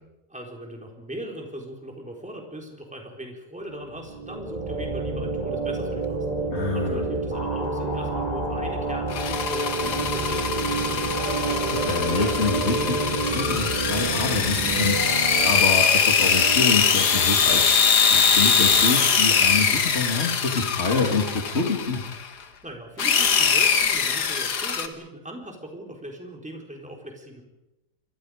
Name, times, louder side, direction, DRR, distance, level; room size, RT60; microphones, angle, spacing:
voice 1, 0.3-6.3 6.7-11.2 22.4-27.4, right 1 dB, 5° right, 0 dB, 4.1 m, -39 dB
sound 1, 3.9-15.5, right 2 dB, 25° right, 8.1 m, -29 dB
voice 2, 6.5-7.0 11.7-22.0, left 3 dB, 40° left, 2 dB, 2.8 m, -27 dB
sound 2, 9.1-22.3 23.0-24.9, left 6 dB, 70° left, 2.0 m, -22 dB
sound 3, 9.3-19.6, right 5 dB, 75° right, 2.4 m, -36 dB
29.5 x 23.5 x 5.0 m, 0.94 s
omnidirectional pair, 1.8 m